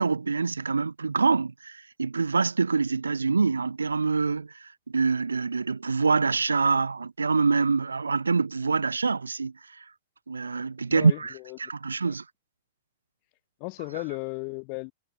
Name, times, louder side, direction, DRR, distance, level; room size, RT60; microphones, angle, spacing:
voice 1, 0.0-9.5 10.3-11.3 11.6-12.2, right 4 dB, 80° right, 1.6 m, -25 dB
voice 2, 10.9-11.6 12.0-12.2 13.6-14.9, left 40 dB or more, 40° left, 7.1 m, -35 dB
figure-of-eight pair, 100°, 0 cm